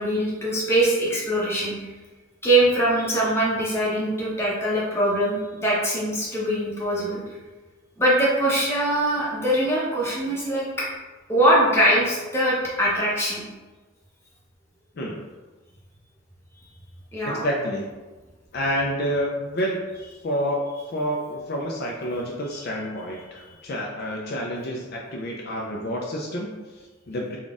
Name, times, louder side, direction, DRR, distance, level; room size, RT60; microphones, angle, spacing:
voice 1, 0.0-1.7 2.4-7.2 8.0-10.9 11.3-13.4 17.1-17.4 23.4-23.5, right 1 dB, 10° left, -6 dB, 0.8 m, -22 dB
voice 2, 17.2-17.9 18.5-19.8 20.2-20.6 20.9-27.4, equal, 50° left, -1 dB, 0.4 m, -28 dB
3.9 x 2.3 x 3.6 m, 1.2 s
head